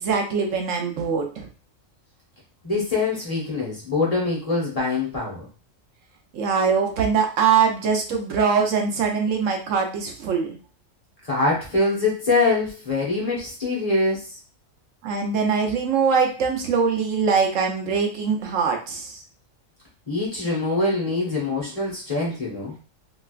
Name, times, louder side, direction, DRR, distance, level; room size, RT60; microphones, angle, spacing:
voice 1, 0.0-1.5 6.3-10.6 15.0-19.2, right 6 dB, 75° right, 3 dB, 1.0 m, -22 dB
voice 2, 2.6-5.5 11.2-14.3 20.1-22.8, left 3 dB, 30° left, -5 dB, 1.1 m, -24 dB
3.2 x 3.0 x 2.4 m, 0.34 s
omnidirectional pair, 1.4 m